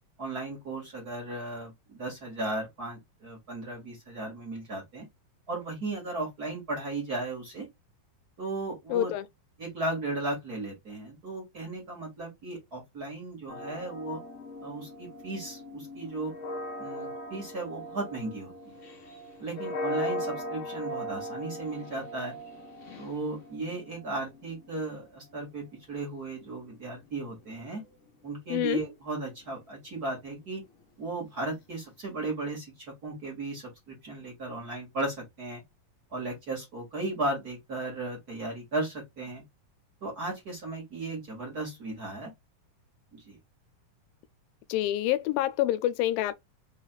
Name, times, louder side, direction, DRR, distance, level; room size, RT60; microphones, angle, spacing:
voice 1, 0.2-5.1 5.5-7.7 8.4-9.1 9.6-14.2 14.6-16.3 16.8-18.5 19.4-22.4 23.0-27.8 28.2-30.6 31.0-32.7 33.0-35.6 36.1-39.4 40.0-42.3 43.1-43.4, right 2 dB, 30° right, 2.2 m, -35 dB
voice 2, 8.9-9.3 28.5-28.8 44.7-46.4, left 13 dB, 85° left, 2.3 m, -27 dB
sound 1, 13.5-25.5 26.4-27.7, equal, 50° left, 1.9 m, -39 dB
5.6 x 4.0 x 2.3 m
omnidirectional pair, 4.0 m